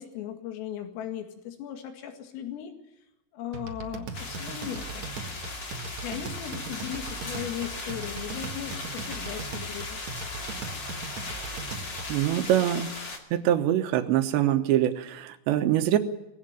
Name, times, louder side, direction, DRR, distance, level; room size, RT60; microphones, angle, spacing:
voice 1, 0.0-2.7 3.3-5.5 6.0-10.0, left 10 dB, 90° left, 5 dB, 4.7 m, -37 dB
sound 1, 3.5-12.3, right 4 dB, 90° right, 1.5 m, -39 dB
sound 2, 4.1-13.2, left 3 dB, 35° left, 1.8 m, -38 dB
voice 2, 12.1-12.9 13.3-16.0, right 12 dB, 75° right, 8 dB, 3.1 m, -24 dB
20.0 x 16.5 x 9.1 m, 0.93 s
omnidirectional pair, 5.8 m